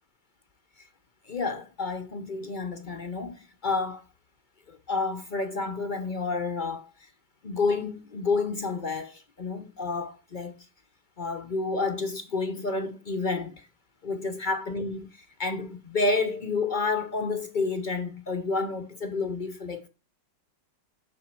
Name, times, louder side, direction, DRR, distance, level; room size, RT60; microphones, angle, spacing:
voice 1, 1.3-4.0 4.7-6.9 7.4-10.6 11.2-13.7 14.0-19.9, left 3 dB, 55° left, 0.5 m, -30 dB
11.0 x 6.2 x 4.5 m
omnidirectional pair, 1.9 m